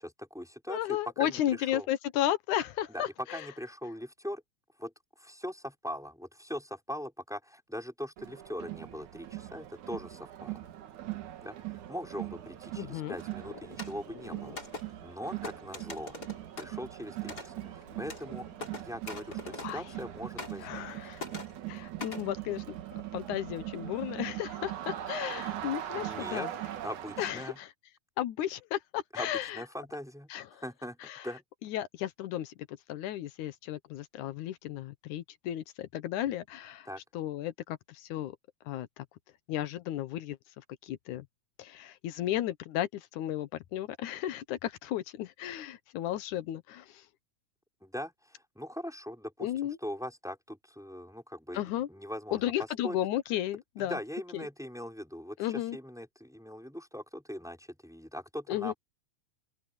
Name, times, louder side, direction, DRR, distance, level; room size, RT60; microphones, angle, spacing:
voice 1, 0.0-1.9 2.9-4.4 4.8-4.9 5.2-10.6 11.4-14.6 15.0-16.2 16.5-18.5 18.8-20.8 25.9-26.5 26.8-27.6 29.1-31.0 31.2-31.4 36.9-37.0 47.8-51.6 51.9-52.4 52.8-53.0 53.8-58.7, equal, ahead, 5.9 m, -41 dB
voice 2, 0.7-3.5 12.8-13.2 19.6-19.8 20.6-21.2 21.7-22.8 23.1-26.5 27.2-27.7 28.2-29.6 30.3-30.6 31.0-31.3 31.6-36.9 37.1-38.4 38.7-39.1 39.5-40.4 40.8-41.3 41.6-47.0 49.4-49.8 51.5-51.9 52.3-54.0 54.3-54.5 55.4-55.8 58.5-58.7, left 12 dB, 85° left, 2.5 m, -34 dB
Crowd, 8.2-27.6, right 13 dB, 85° right, 3.0 m, -41 dB
sound 1, 13.2-20.1 20.4-20.9 21.2-22.3, left 3 dB, 30° left, 5.3 m, -45 dB
open air
omnidirectional pair, 3.4 m